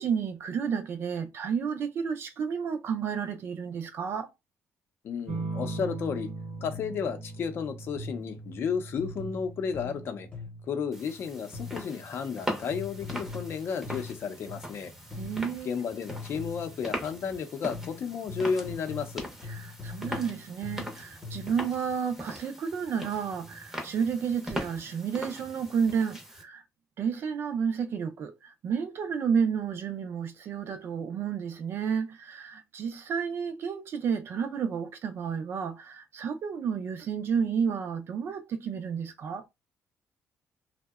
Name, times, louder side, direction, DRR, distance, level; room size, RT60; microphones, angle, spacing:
voice 1, 0.0-4.3 15.1-15.7 19.5-26.6 27.0-39.4, right 6 dB, 50° right, 0.4 m, -31 dB
voice 2, 5.0-6.3 6.6-10.3 10.6-14.9 15.6-19.3, left 6 dB, 50° left, 0.5 m, -33 dB
sound 1, 5.3-14.4 15.8-16.4, right 3 dB, 70° right, 0.8 m, -41 dB
sound 2, 6.7-7.1 8.0-8.4 9.0-10.8 11.5-12.0 12.7-14.8 15.1-15.6 16.1-16.9 17.7-21.7, left 4 dB, 25° left, 0.9 m, -42 dB
sound 3, 10.9-26.4, equal, 5° right, 0.6 m, -41 dB
2.7 x 2.0 x 2.3 m
cardioid pair, 150°, 5 cm